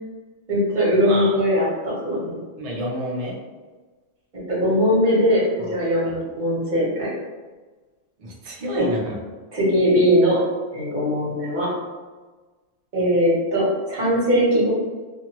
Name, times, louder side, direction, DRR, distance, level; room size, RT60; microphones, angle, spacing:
voice 1, 0.5-2.4 4.5-5.4 5.7-7.1 8.8-8.9 9.5-10.4 10.7-11.7 12.9-14.7, equal, 40° right, -6 dB, 1.1 m, -20 dB
voice 2, 1.0-1.4 2.6-3.4 8.2-9.2, equal, 65° right, -3 dB, 0.3 m, -29 dB
2.5 x 2.5 x 2.9 m, 1.3 s
omnidirectional pair, 1.3 m